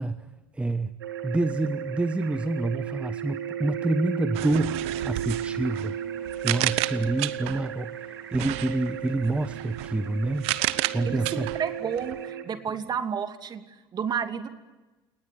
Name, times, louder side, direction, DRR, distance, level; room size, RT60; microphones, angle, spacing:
voice 1, 0.0-10.5 10.9-11.5, right 2 dB, 10° right, 13 dB, 1.0 m, -28 dB
sound 1, 1.0-12.4, right 9 dB, 80° right, 2.6 m, -35 dB
sound 2, 4.3-7.7 8.3-12.2, right 19 dB, 60° right, 0.9 m, -32 dB
voice 2, 11.0-14.5, right 7 dB, 35° right, 8 dB, 2.8 m, -31 dB
29.0 x 19.5 x 10.0 m, 1.1 s
hypercardioid pair, 70°, 12 cm